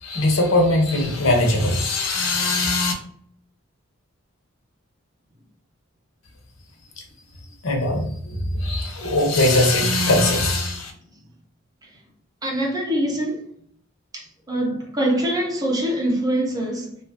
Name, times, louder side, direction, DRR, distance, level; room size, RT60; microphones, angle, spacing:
voice 1, 0.0-2.9 7.6-10.9, left 2 dB, 80° left, 0.7 m, -20 dB
voice 2, 12.4-13.4 14.1-17.0, right 1 dB, 20° right, 0.6 m, -24 dB
2.7 x 2.4 x 2.5 m
head